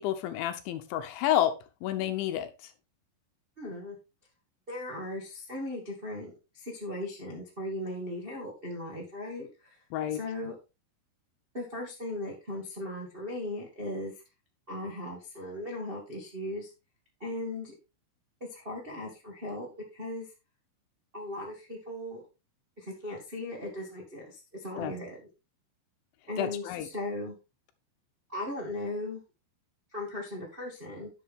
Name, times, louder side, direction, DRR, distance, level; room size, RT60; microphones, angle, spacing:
voice 1, 0.0-1.5 1.8-2.7 9.9-10.2 24.8-24.9 26.4-26.9, left 11 dB, 80° left, 9 dB, 3.1 m, -30 dB
voice 2, 3.6-3.9 4.7-9.7 10.1-10.5 11.5-14.1 14.7-16.7 17.2-17.7 18.5-20.2 21.1-22.2 22.8-25.3 26.3-27.3 28.3-29.2 29.9-31.1, left 1 dB, 40° right, -2 dB, 0.7 m, -37 dB
11.0 x 6.8 x 3.6 m, 0.27 s
omnidirectional pair, 5.6 m